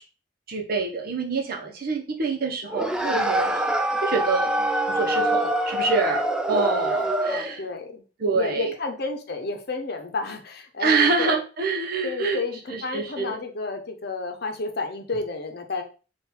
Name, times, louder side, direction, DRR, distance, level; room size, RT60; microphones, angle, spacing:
voice 1, 0.5-4.5 4.9-7.6 8.2-8.7 10.8-12.4 12.7-13.4, right 4 dB, 55° right, 2 dB, 0.9 m, -26 dB
sound 1, 2.7-7.6, right 1 dB, 5° right, 0.4 m, -24 dB
voice 2, 6.9-8.0 8.3-11.4 12.0-15.8, left 3 dB, 60° left, 5 dB, 0.8 m, -31 dB
3.8 x 2.5 x 4.3 m, 0.35 s
head